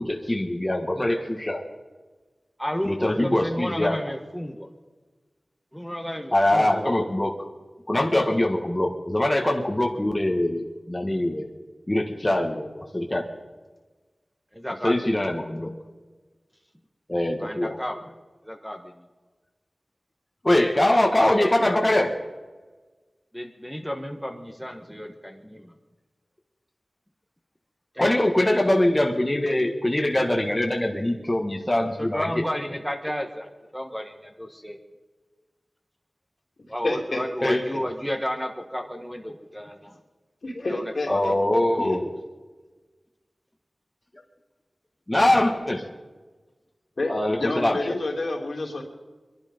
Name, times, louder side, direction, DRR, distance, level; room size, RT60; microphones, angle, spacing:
voice 1, 0.0-1.6 2.8-4.0 6.3-7.3 7.9-11.5 11.9-13.3 14.8-15.7 17.1-17.8 20.4-22.2 28.0-32.4 37.4-37.7 41.1-42.0 45.1-45.8 47.1-48.0, left 1 dB, 20° left, 2 dB, 1.6 m, -23 dB
voice 2, 2.6-4.7 5.7-6.9 14.5-15.3 17.4-18.1 18.4-18.8 23.3-25.7 27.9-28.1 32.0-34.8 36.7-40.0 40.7-41.5, equal, ahead, 3 dB, 1.4 m, -32 dB
voice 3, 36.8-37.5 40.4-41.3 41.8-42.0 47.0-47.1 47.4-48.8, left 2 dB, 70° left, 0 dB, 3.2 m, -29 dB
24.0 x 11.5 x 5.2 m, 1.3 s
wide cardioid pair, 75°, 0 cm